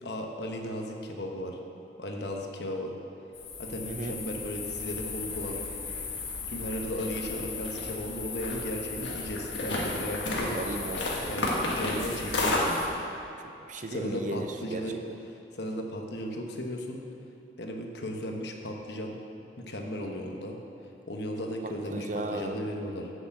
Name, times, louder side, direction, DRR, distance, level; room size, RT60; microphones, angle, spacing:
voice 1, 0.0-1.6 2.0-2.9 3.6-5.6 6.5-10.6 11.3-12.8 13.8-15.0 15.5-17.0 17.6-19.2 19.6-20.6 21.1-23.1, equal, 65° left, 2 dB, 1.0 m, -35 dB
sound 1, 3.3-12.9, left 2 dB, 85° left, 1.6 m, -33 dB
voice 2, 3.8-4.2 10.5-11.3 13.4-15.0 21.6-22.7, right 2 dB, 45° right, 6 dB, 0.6 m, -36 dB
7.1 x 7.0 x 7.8 m, 2.9 s
head